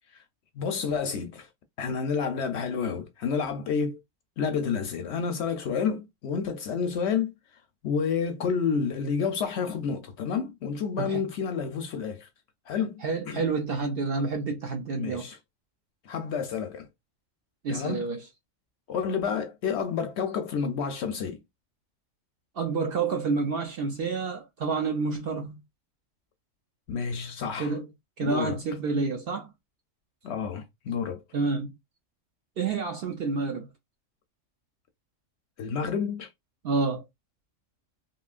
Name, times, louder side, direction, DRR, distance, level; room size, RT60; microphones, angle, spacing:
voice 1, 0.5-1.5 1.8-4.0 4.4-7.3 7.8-12.3 12.7-13.4 14.9-15.4 16.0-16.9 17.7-18.1 18.9-21.4 26.9-27.7 28.2-28.6 30.2-31.2 35.6-36.3, left 6 dB, 65° left, 0.7 m, -29 dB
voice 2, 13.0-15.3 17.6-18.2 22.6-25.6 27.6-27.8 28.2-29.5 31.3-31.7 32.6-33.7 36.6-37.0, right 4 dB, 55° right, 0.7 m, -29 dB
3.0 x 2.7 x 2.3 m
omnidirectional pair, 1.4 m